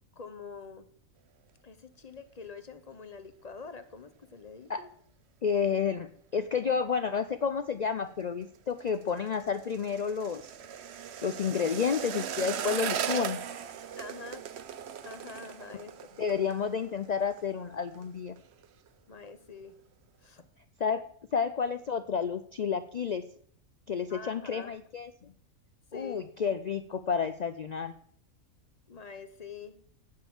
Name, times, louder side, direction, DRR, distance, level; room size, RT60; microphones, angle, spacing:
voice 1, 0.2-0.9 1.6-4.9 13.9-14.4 15.0-16.4 19.1-19.8 20.2-20.4 24.1-24.7 25.9-26.3 28.9-29.8, left 5 dB, 35° left, 10 dB, 0.8 m, -46 dB
voice 2, 5.4-6.1 6.3-10.5 11.2-13.4 16.2-18.4 20.8-21.0 21.3-23.2 23.9-25.3 25.9-27.9, left 6 dB, 85° left, 11 dB, 0.3 m, -30 dB
sound 1, 8.4-17.5 17.7-18.1 18.4-18.9 19.3-19.4, right 8 dB, 60° right, 0.9 m, -38 dB
9.4 x 6.6 x 7.0 m, 0.62 s
omnidirectional pair, 1.4 m